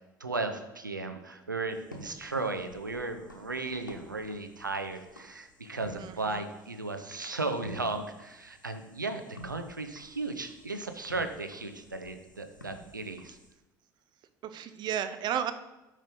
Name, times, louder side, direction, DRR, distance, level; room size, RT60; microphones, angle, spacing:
voice 1, 0.2-13.4, right 3 dB, 90° right, 8 dB, 0.5 m, -35 dB
sound 1, 1.7-13.5, equal, 90° left, 0.9 m, -51 dB
voice 2, 6.0-6.4 14.4-15.5, right 9 dB, 45° right, 11 dB, 0.6 m, -33 dB
8.9 x 3.2 x 5.3 m, 1.0 s
figure-of-eight pair, 60°, 10 cm